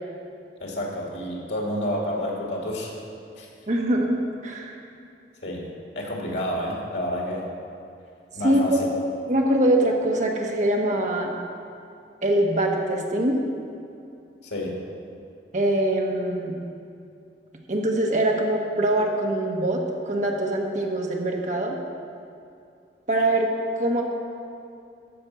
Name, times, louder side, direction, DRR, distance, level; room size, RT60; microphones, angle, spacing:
voice 1, 0.6-2.9 3.4-3.5 5.4-7.4 8.3-8.9 14.4-14.8, equal, 85° left, -1 dB, 2.3 m, -29 dB
voice 2, 3.7-4.7 8.4-8.9 9.3-11.3 12.2-13.3 15.5-16.5 17.7-21.8 23.1-23.5 23.8-24.0, right 1 dB, 45° right, 0 dB, 1.2 m, -23 dB
13.5 x 5.2 x 6.8 m, 2.6 s
head